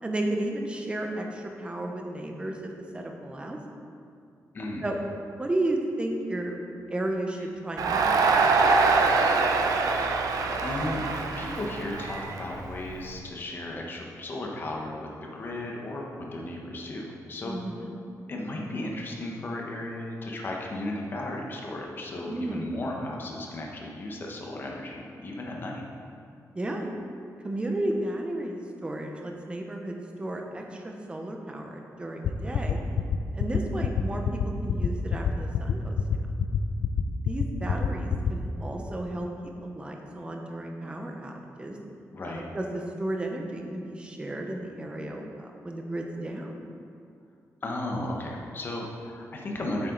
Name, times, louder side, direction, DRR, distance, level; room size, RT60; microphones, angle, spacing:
voice 1, 0.0-3.6 4.8-5.0 5.4-6.6 6.9-8.9 17.4-17.9 22.2-22.7 26.5-26.9 27.4-32.8 33.3-36.0 37.2-41.8 42.3-46.6, right 1 dB, 15° right, 2 dB, 0.8 m, -33 dB
voice 2, 4.5-4.9 10.5-11.0 11.3-17.6 18.3-25.8 42.1-42.5 47.6-49.9, left 1 dB, 35° left, -1 dB, 1.2 m, -35 dB
Crowd, 7.8-13.0, right 4 dB, 80° right, 0.7 m, -24 dB
sound 1, 32.2-38.3, left 8 dB, 70° left, 0.5 m, -25 dB
9.2 x 7.4 x 3.9 m, 2.4 s
wide cardioid pair, 175°, 6 cm